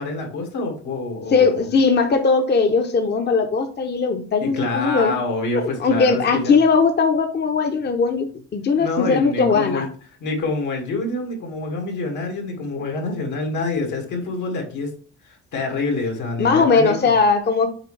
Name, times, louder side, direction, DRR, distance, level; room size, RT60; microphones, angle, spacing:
voice 1, 0.0-1.6 4.4-6.6 8.8-9.9 10.2-14.9 15.2-17.1, left 3 dB, 80° left, 1 dB, 2.2 m, -26 dB
voice 2, 1.3-5.1 5.5-9.9 16.4-17.7, left 4 dB, 35° left, 5 dB, 0.7 m, -19 dB
6.5 x 4.5 x 3.2 m, 0.43 s
cardioid pair, 90°, 30 cm